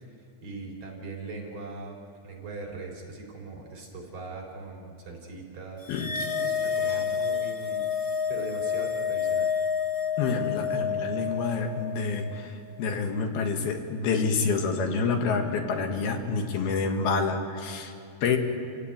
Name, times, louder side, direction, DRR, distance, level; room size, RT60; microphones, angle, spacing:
voice 1, 0.4-2.0 2.2-5.8 6.4-7.8 8.3-9.5, right 3 dB, 40° right, 0 dB, 4.8 m, -40 dB
sound 1, 5.9-12.5, left 7 dB, 45° left, 1.2 m, -29 dB
voice 2, 10.2-17.9 18.2-18.4, left 4 dB, 80° left, 4 dB, 3.7 m, -28 dB
29.5 x 16.5 x 9.4 m, 2.5 s
omnidirectional pair, 4.4 m